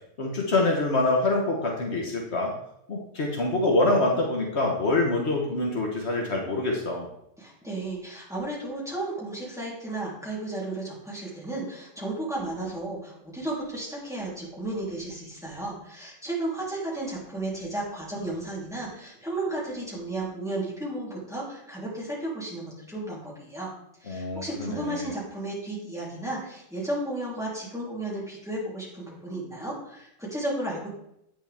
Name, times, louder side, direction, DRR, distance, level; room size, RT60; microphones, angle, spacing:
voice 1, 0.2-2.5 2.9-7.1 24.1-25.1, left 2 dB, 65° left, 0 dB, 1.4 m, -25 dB
voice 2, 7.4-23.7 24.0-30.9, right 2 dB, ahead, -7 dB, 3.3 m, -33 dB
8.9 x 6.9 x 3.5 m, 0.76 s
omnidirectional pair, 1.2 m